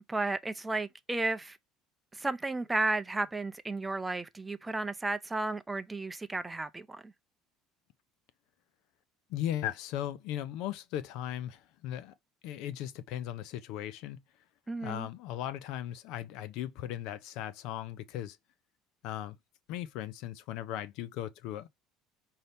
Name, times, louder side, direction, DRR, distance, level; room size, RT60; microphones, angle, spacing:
voice 1, 0.1-1.6 2.1-7.1 14.7-15.1, right 2 dB, 10° right, 0.5 m, -33 dB
voice 2, 9.3-12.1 12.4-14.2 14.8-18.4 19.0-19.4 19.7-21.7, left 12 dB, 70° left, 0.6 m, -37 dB
5.5 x 2.8 x 3.4 m
supercardioid pair, 110°, 0 cm